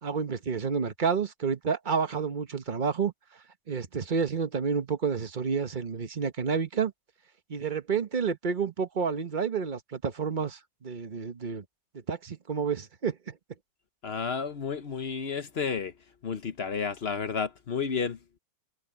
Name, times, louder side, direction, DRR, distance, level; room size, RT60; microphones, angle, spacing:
voice 1, 0.0-3.1 3.7-6.9 7.5-11.6 12.1-13.4, right 6 dB, 35° right, 0.9 m, -30 dB
voice 2, 14.0-15.9 16.2-18.2, left 6 dB, 50° left, 0.8 m, -31 dB
omnidirectional pair, 2.0 m